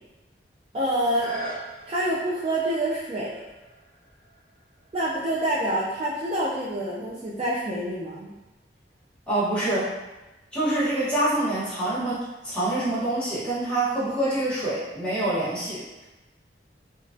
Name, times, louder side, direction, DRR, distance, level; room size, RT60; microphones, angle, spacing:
voice 1, 0.7-1.3 1.9-3.4 4.9-8.3, right 1 dB, 35° right, -6 dB, 0.3 m, -27 dB
sound 1, 0.9-6.6 7.1-7.2, right 1 dB, 55° left, 0.8 m, -42 dB
voice 2, 9.3-9.9 10.5-15.8, right 1 dB, 5° left, -10 dB, 1.0 m, -26 dB
3.1 x 2.3 x 2.5 m, 1.1 s
head